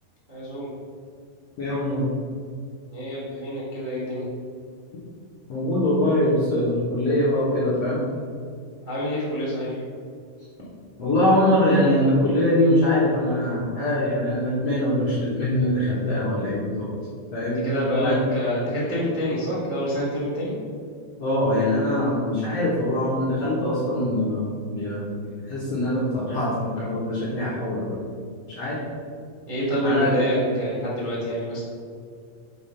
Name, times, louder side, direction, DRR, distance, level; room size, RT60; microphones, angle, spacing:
voice 1, 0.3-0.7 2.9-4.2 8.9-9.8 17.6-20.5 29.5-31.6, equal, 75° right, -7 dB, 0.4 m, -27 dB
voice 2, 1.6-2.1 5.5-8.0 11.0-16.9 17.3-18.2 21.2-28.1 28.5-28.8 29.8-30.1, left 1 dB, 70° left, -8 dB, 1.5 m, -23 dB
7.1 x 4.2 x 5.8 m, 2.2 s
omnidirectional pair, 4.7 m